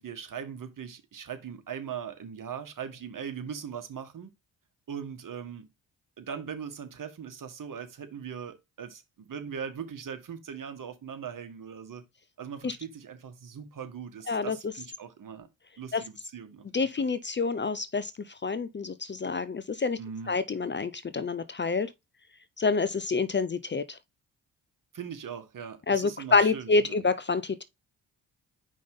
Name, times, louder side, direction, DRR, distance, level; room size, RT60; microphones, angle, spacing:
voice 1, 0.0-4.3 4.9-5.6 6.2-12.0 12.4-15.5 15.8-16.9 20.0-20.3 24.9-27.0, right 7 dB, 50° right, 1.6 m, -40 dB
voice 2, 16.7-18.1 18.4-20.0 20.3-21.9 22.6-24.0 25.9-27.6, left 4 dB, 25° left, 0.7 m, -27 dB
5.1 x 3.7 x 5.3 m
hypercardioid pair, 45°, 41 cm